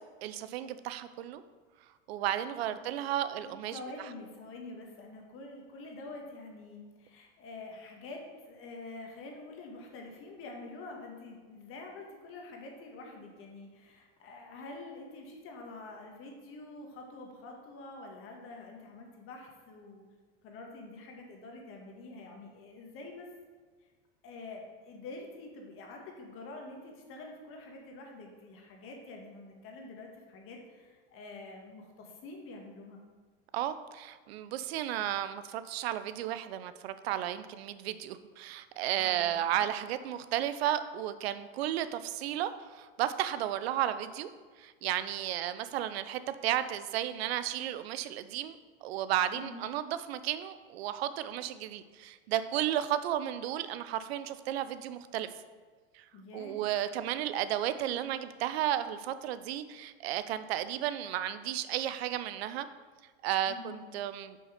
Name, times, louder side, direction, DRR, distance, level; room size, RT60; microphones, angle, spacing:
voice 1, 0.2-1.4 2.1-3.8 33.5-44.3 44.6-55.3 55.9-56.0 56.3-62.7 63.2-64.4, right 11 dB, 80° right, 13 dB, 0.6 m, -33 dB
voice 2, 3.4-20.0 20.4-23.3 24.2-33.0 39.0-39.4 49.3-49.7 56.1-56.6 63.5-63.9, left 2 dB, 45° left, 1 dB, 1.5 m, -47 dB
5.8 x 5.4 x 4.9 m, 1.4 s
supercardioid pair, 115°, 31 cm